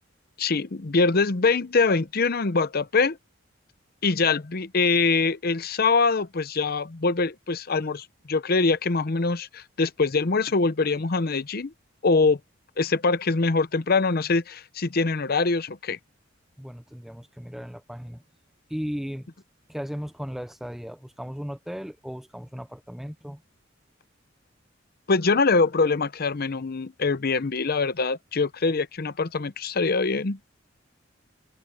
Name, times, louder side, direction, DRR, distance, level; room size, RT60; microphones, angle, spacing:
voice 1, 0.4-3.2 4.0-11.7 12.0-12.4 12.8-16.0 25.1-30.4, left 4 dB, 50° left, 0.7 m, -23 dB
voice 2, 16.6-18.2 18.7-19.3 19.7-23.4, equal, ahead, 0.4 m, -36 dB
head